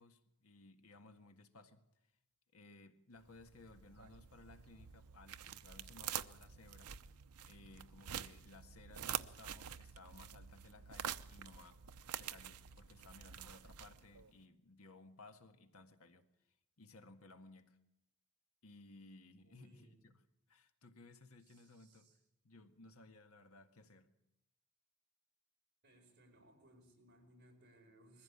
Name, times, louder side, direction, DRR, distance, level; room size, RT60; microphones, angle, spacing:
voice 1, 0.0-1.9 2.5-6.9 7.4-11.8 12.1-16.3 16.8-17.8 18.6-22.1 22.4-24.1, left 2 dB, 75° left, 1.7 m, -60 dB
sound 1, 3.3-14.3, right 9 dB, 90° right, 0.8 m, -47 dB
voice 2, 19.4-20.0 21.4-22.2 25.8-28.2, right 1 dB, 45° right, 4.7 m, -65 dB
22.0 x 15.5 x 8.8 m
head